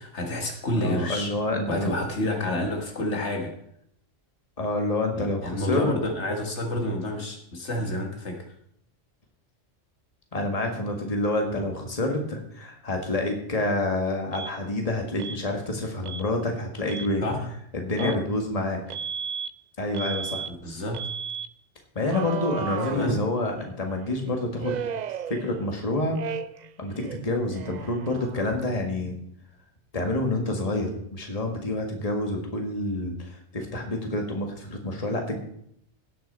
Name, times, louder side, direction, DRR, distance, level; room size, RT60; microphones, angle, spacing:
voice 1, 0.0-1.3 1.7-3.6 5.2-8.5 17.2-17.4 18.0-18.2 20.5-21.0 22.9-23.2, left 1 dB, 70° left, 3 dB, 1.8 m, -29 dB
voice 2, 0.8-2.0 4.6-5.9 10.3-17.2 17.7-18.8 19.8-20.4 21.9-24.8 25.3-26.2 26.8-29.1 29.9-35.4, left 2 dB, 30° left, 2 dB, 1.8 m, -28 dB
Alarm, 14.3-14.5 15.2-15.4 16.0-16.3 16.8-17.1 18.0-18.2 18.9-19.5 19.9-20.5 20.9-21.5 22.1-23.6 24.6-25.8 26.1-26.7 27.0-28.7, right 7 dB, 60° right, 0.5 m, -35 dB
17.5 x 6.0 x 4.2 m, 0.70 s
omnidirectional pair, 1.2 m